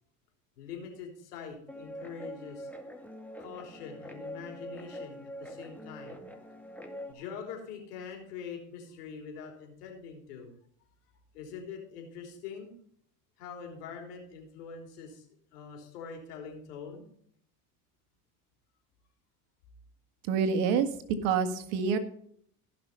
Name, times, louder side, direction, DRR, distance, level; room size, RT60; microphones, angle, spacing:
voice 1, 0.6-2.7 3.4-6.2 7.0-10.5 11.3-12.7 13.4-15.2 15.5-17.1, left 6 dB, 85° left, 2 dB, 3.7 m, -44 dB
Guitar, 1.7-7.1, equal, 5° left, 2.0 m, -44 dB
voice 2, 20.2-20.9 21.2-22.0, right 6 dB, 70° right, 8 dB, 1.8 m, -27 dB
16.5 x 6.1 x 5.6 m, 0.64 s
hypercardioid pair, 85°, 46 cm